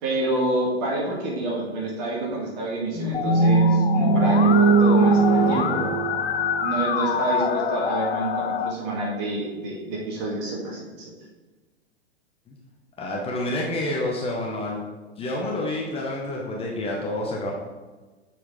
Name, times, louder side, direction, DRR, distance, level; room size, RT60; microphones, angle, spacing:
voice 1, 0.0-5.9 6.6-11.1, right 2 dB, 40° right, -2 dB, 2.0 m, -28 dB
sound 1, 2.9-7.1, right 3 dB, 10° right, 1.2 m, -20 dB
Musical instrument, 3.1-8.7, left 7 dB, 65° left, 0.6 m, -27 dB
voice 2, 13.0-14.8 15.2-17.5, left 1 dB, 15° left, -2 dB, 0.8 m, -28 dB
6.9 x 4.4 x 3.8 m, 1.3 s
figure-of-eight pair, 100°, 33 cm